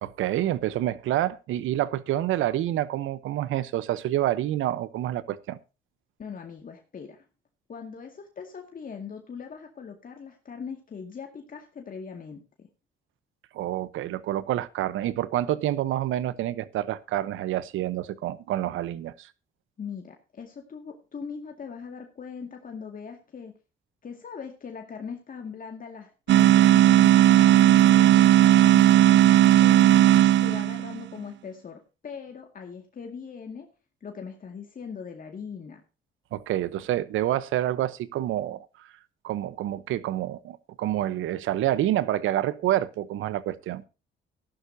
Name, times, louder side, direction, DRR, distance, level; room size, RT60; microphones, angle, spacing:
voice 1, 0.0-5.6 13.5-19.3 36.3-38.6 39.2-43.8, right 13 dB, 85° right, 0.9 m, -28 dB
voice 2, 6.2-7.2 7.7-12.7 19.8-23.5 24.0-33.7 34.0-35.8, left 6 dB, 45° left, 2.1 m, -40 dB
sound 1, 26.3-31.0, right 13 dB, 65° right, 0.5 m, -16 dB
14.5 x 11.5 x 2.7 m
cardioid pair, 90°, 20 cm